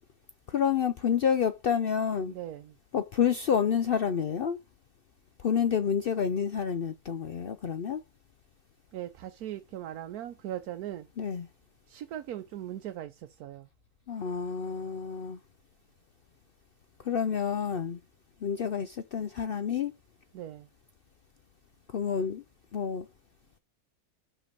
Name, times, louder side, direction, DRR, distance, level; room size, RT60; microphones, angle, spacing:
voice 1, 0.5-2.3 2.9-4.6 5.4-8.0 11.2-11.5 14.1-15.4 17.0-18.0 18.4-20.0 21.9-22.4 22.7-23.1, left 7 dB, 60° left, 0.6 m, -29 dB
voice 2, 2.3-2.8 8.9-11.1 11.9-13.7 20.3-20.7, right 12 dB, 90° right, 1.2 m, -39 dB
6.0 x 5.3 x 6.7 m
omnidirectional pair, 1.5 m